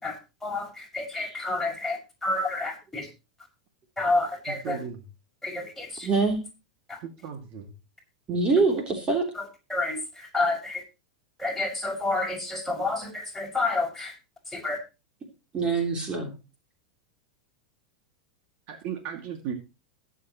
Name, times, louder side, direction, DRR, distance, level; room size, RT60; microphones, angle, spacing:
voice 1, 0.0-3.1 4.0-4.8 5.4-6.1 6.9-7.0 9.3-10.8 11.4-14.1 14.5-14.8, left 2 dB, 5° left, -1 dB, 5.8 m, -29 dB
voice 2, 4.5-5.0 7.0-7.7 8.6-8.8 18.7-19.5, right 8 dB, 50° right, 4 dB, 2.3 m, -36 dB
voice 3, 6.0-6.4 8.3-9.3 15.5-16.3, right 3 dB, 25° right, 2 dB, 3.4 m, -24 dB
21.0 x 7.4 x 3.1 m, 0.29 s
hypercardioid pair, 95°, 4 cm